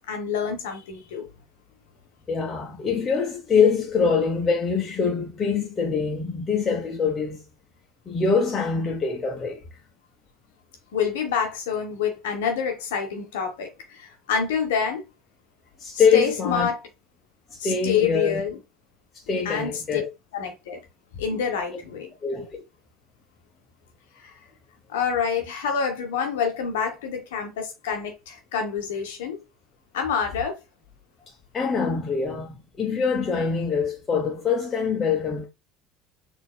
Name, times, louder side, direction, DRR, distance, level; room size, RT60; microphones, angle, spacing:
voice 1, 0.1-1.3 10.9-15.0 16.1-16.8 17.6-18.6 19.4-20.0 20.3-20.8 21.1-22.1 24.2-24.3 24.9-29.4 29.9-30.6, left 6 dB, 70° left, 1.0 m, -27 dB
voice 2, 2.3-7.4 8.1-9.6 15.8-16.7 17.6-18.4 19.3-20.1 22.2-22.6 31.5-35.5, left 5 dB, 30° left, 1.0 m, -24 dB
4.2 x 2.9 x 2.2 m
figure-of-eight pair, 65°, 0 cm